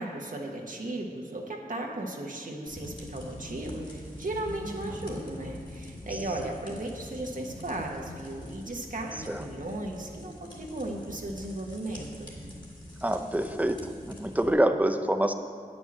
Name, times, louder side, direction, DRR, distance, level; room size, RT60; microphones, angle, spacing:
voice 1, 0.0-12.3, right 1 dB, 55° right, 0 dB, 1.2 m, -36 dB
sound 1, 2.7-14.5, left 1 dB, 30° left, 2.2 m, -44 dB
voice 2, 4.7-5.0 9.3-9.4 13.0-13.8 14.1-15.3, right 1 dB, 10° right, 7 dB, 0.6 m, -26 dB
9.0 x 6.4 x 7.3 m, 2.2 s
wide cardioid pair, 65°, 16 cm